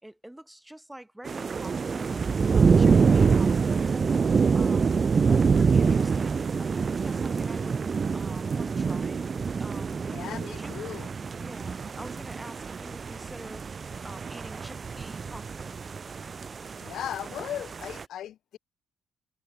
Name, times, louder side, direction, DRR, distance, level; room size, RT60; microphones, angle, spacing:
voice 1, 0.0-4.0 4.5-7.8 8.1-9.3 9.6-10.1 10.4-10.7 11.3-13.7 14.0-15.8, right 1 dB, 5° right, 6.5 m, -46 dB
sound 1, 1.3-18.0, right 5 dB, 40° right, 0.6 m, -26 dB
voice 2, 10.1-11.1 16.8-18.6, left 11 dB, 75° left, 1.0 m, -37 dB
cardioid pair, 90°, 0 cm